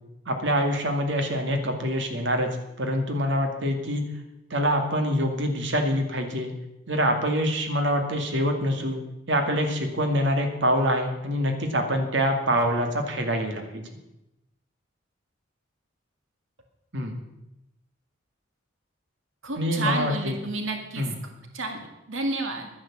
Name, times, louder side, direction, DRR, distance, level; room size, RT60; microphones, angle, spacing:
voice 1, 0.3-2.5 2.8-4.0 4.5-6.5 6.9-9.0 9.3-13.8 16.9-17.2 19.6-20.4 21.0-21.1, equal, 65° right, 4 dB, 2.2 m, -25 dB
voice 2, 19.4-21.1 21.5-22.7, right 2 dB, 90° right, 4 dB, 2.2 m, -30 dB
11.5 x 10.0 x 7.3 m, 0.92 s
head